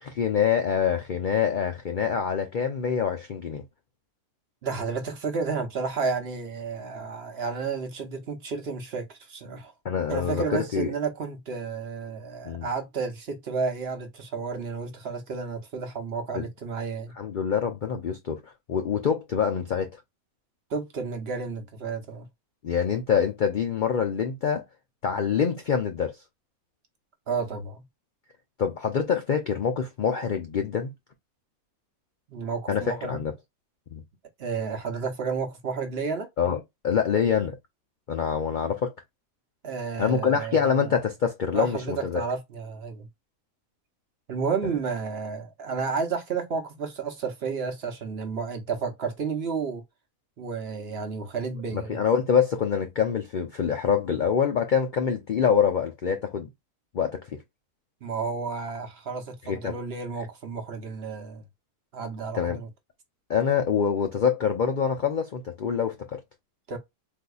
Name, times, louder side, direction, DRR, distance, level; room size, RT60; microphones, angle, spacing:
voice 1, 0.0-3.6 9.8-10.9 12.5-12.7 16.3-16.4 17.2-19.9 22.6-24.6 25.0-26.1 28.6-30.9 32.7-33.3 33.9-34.0 36.4-37.6 38.1-38.9 40.0-42.2 51.7-56.5 56.9-57.2 59.5-59.7 62.3-62.6 63.3-66.2, left 7 dB, 60° left, 0.5 m, -25 dB
voice 2, 4.6-9.7 10.1-17.1 20.7-22.3 27.3-27.8 32.3-33.2 34.4-36.3 39.6-40.9 41.5-43.1 44.3-49.8 50.4-52.1 58.0-61.4 61.9-62.7 66.7-66.8, right 5 dB, 50° right, 0.9 m, -31 dB
4.0 x 2.7 x 2.3 m
omnidirectional pair, 1.5 m